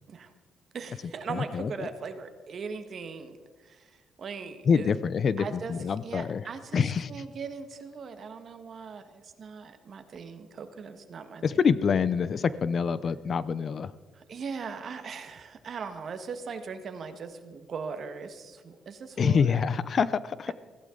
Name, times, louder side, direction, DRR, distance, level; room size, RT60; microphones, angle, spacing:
voice 1, 0.7-3.4 3.6-3.9 4.2-4.9 5.4-5.7 6.0-6.8 7.1-11.6 14.1-19.7 20.5-20.6, right 5 dB, 55° right, 8 dB, 1.5 m, -39 dB
voice 2, 1.3-1.9 4.7-6.4 6.7-7.1 11.4-13.9 19.2-20.5, left 6 dB, 50° left, 17 dB, 0.6 m, -26 dB
16.0 x 15.0 x 3.9 m, 1.4 s
cardioid pair, 90°, 0 cm